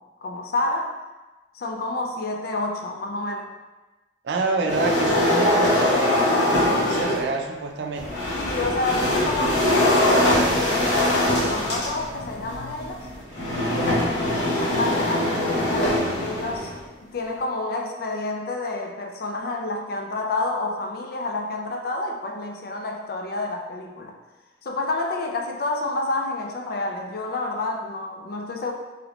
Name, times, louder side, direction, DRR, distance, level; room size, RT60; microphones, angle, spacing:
voice 1, 0.2-1.0 1.5-3.5 8.3-10.6 10.9-13.0 13.7-16.7 17.1-24.1 24.6-28.7, left 2 dB, 60° left, 2 dB, 0.4 m, -29 dB
voice 2, 4.2-8.1, right 3 dB, 70° right, 3 dB, 0.4 m, -27 dB
sound 1, 4.7-7.3 8.0-16.8, left 1 dB, 85° left, 0.8 m, -22 dB
3.4 x 2.8 x 2.4 m, 1.1 s
head